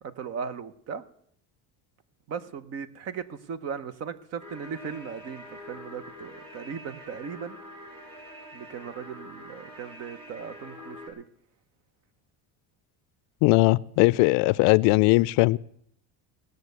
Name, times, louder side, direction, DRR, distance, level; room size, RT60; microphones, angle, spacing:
voice 1, 0.0-1.0 2.3-7.6 8.5-11.2, right 6 dB, 40° right, 0.8 m, -37 dB
sound 1, 4.4-11.1, left 1 dB, 15° right, 3.1 m, -45 dB
voice 2, 13.4-15.6, left 22 dB, 75° left, 0.5 m, -20 dB
17.0 x 6.6 x 8.1 m
cardioid pair, 175°, 40 cm